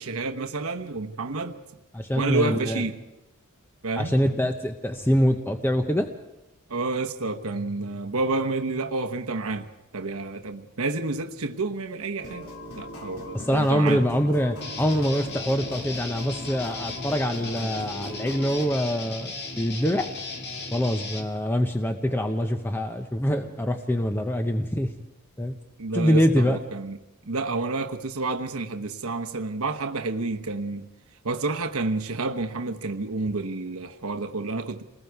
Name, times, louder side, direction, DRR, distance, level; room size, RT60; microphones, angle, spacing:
voice 1, 0.0-1.6 2.1-3.0 3.8-4.1 6.7-9.7 9.9-12.5 12.7-14.0 17.8-17.9 25.8-27.0 27.3-30.9 31.2-34.8, right 3 dB, 70° right, 1.1 m, -29 dB
voice 2, 1.9-2.8 4.0-6.1 13.3-20.1 20.7-24.9 25.4-25.6 25.9-26.6, equal, 10° left, 0.7 m, -24 dB
sound 1, 12.2-18.7, left 2 dB, 70° left, 3.6 m, -40 dB
Guitar, 14.6-21.3, left 3 dB, 50° left, 2.0 m, -36 dB
28.5 x 20.5 x 4.7 m
head